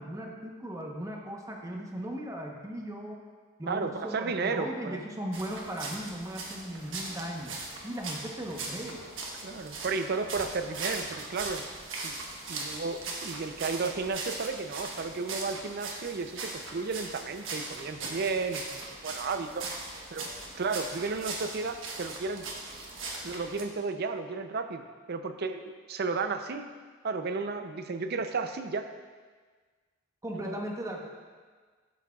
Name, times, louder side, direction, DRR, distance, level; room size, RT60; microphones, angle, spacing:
voice 1, 0.0-3.2 3.6-7.6 7.8-9.0 30.2-31.1, right 1 dB, 15° right, 0 dB, 0.9 m, -37 dB
voice 2, 3.7-5.0 9.4-11.7 12.0-12.1 12.5-19.6 20.1-20.2 20.6-22.5 23.2-26.7 27.0-28.9 30.3-30.7, right 4 dB, 55° right, 8 dB, 0.5 m, -33 dB
sound 1, 5.3-23.6, right 3 dB, 70° right, 1.2 m, -40 dB
12.5 x 7.3 x 2.4 m, 1.5 s
head